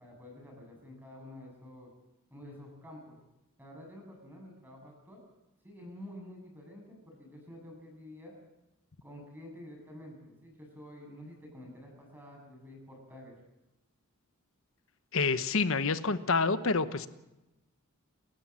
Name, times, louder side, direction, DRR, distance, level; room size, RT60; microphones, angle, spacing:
voice 1, 0.0-1.9 2.3-3.2 3.6-5.2 5.6-8.3 9.0-13.4, left 1 dB, 10° right, 1 dB, 8.0 m, -49 dB
voice 2, 15.1-17.1, left 4 dB, 60° left, 12 dB, 1.1 m, -28 dB
29.5 x 13.5 x 7.5 m, 0.96 s
head